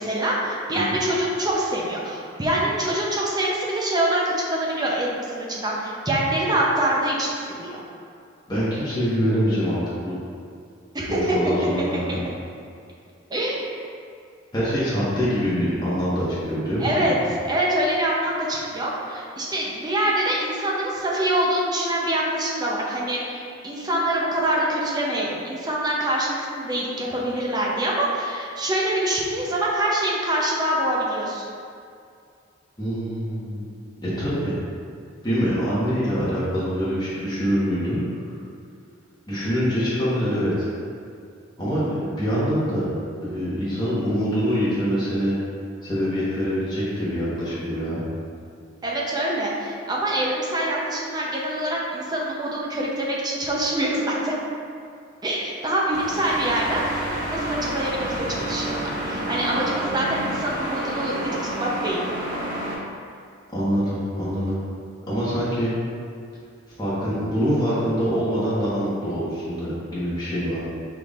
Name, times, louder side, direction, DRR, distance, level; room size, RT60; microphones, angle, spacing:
voice 1, 0.0-7.8 10.9-11.4 13.3-13.7 16.8-17.2 17.5-31.4 48.8-54.3 55.2-62.0, right 1 dB, 20° right, -4 dB, 0.6 m, -25 dB
voice 2, 8.5-10.2 11.1-12.2 14.5-17.1 32.8-33.7 34.0-34.5 35.2-38.0 39.3-40.7 41.6-42.8 43.2-45.3 45.8-48.0 63.5-64.6 65.1-65.7 66.8-70.6, equal, 20° left, -11 dB, 1.2 m, -24 dB
sound 1, 55.9-62.7, right 1 dB, 50° right, 1.2 m, -29 dB
6.0 x 3.5 x 2.4 m, 2.4 s
head